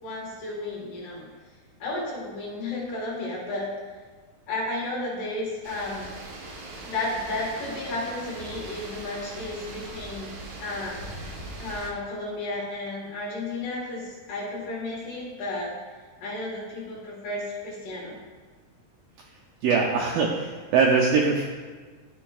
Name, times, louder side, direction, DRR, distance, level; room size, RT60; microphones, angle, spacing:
voice 1, 0.0-1.2 1.8-3.7 4.5-6.2 6.8-10.3 10.6-11.0 11.6-15.7 16.2-18.2, left 2 dB, 65° left, -4 dB, 2.7 m, -33 dB
sound 1, 5.6-11.9, right 2 dB, 70° right, 1.7 m, -40 dB
voice 2, 19.6-21.5, right 5 dB, 85° right, 0 dB, 2.0 m, -22 dB
11.5 x 5.2 x 2.3 m, 1.5 s
omnidirectional pair, 4.7 m